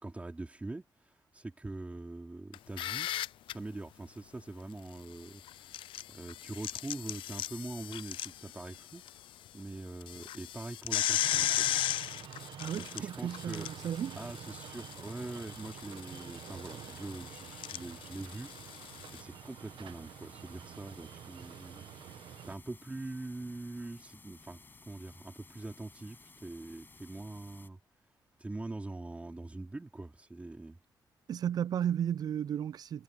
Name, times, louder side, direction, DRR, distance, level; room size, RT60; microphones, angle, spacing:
voice 1, 0.0-3.2 3.5-9.0 9.5-11.8 12.8-13.7 14.2-27.8 28.4-30.8, right 2 dB, 15° right, 3.2 m, -43 dB
sound 1, 2.5-3.5 5.5-9.1 9.5-9.6 10.0-19.2, left 13 dB, 90° left, 0.4 m, -36 dB
sound 2, 11.2-22.6, right 10 dB, 80° right, 1.2 m, -48 dB
voice 2, 12.6-14.2 31.3-33.0, right 9 dB, 50° right, 0.4 m, -34 dB
sound 3, 12.9-27.7, left 3 dB, 25° left, 6.3 m, -58 dB
cardioid pair, 125°, 8 cm